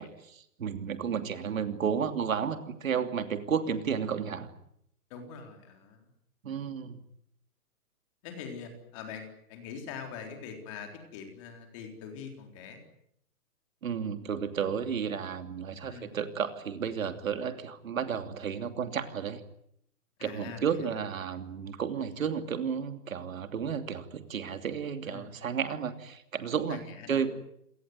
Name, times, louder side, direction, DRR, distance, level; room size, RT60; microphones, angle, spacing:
voice 1, 0.0-4.5 6.4-7.0 13.8-19.4 20.2-26.8 27.1-27.3, right 7 dB, 60° right, 9 dB, 3.0 m, -32 dB
voice 2, 5.1-6.0 8.2-12.8 15.9-16.2 20.2-20.6 25.1-25.3 26.7-27.3, left 6 dB, 20° left, 4 dB, 3.9 m, -43 dB
28.0 x 19.0 x 9.5 m, 0.73 s
hypercardioid pair, 175°, 46 cm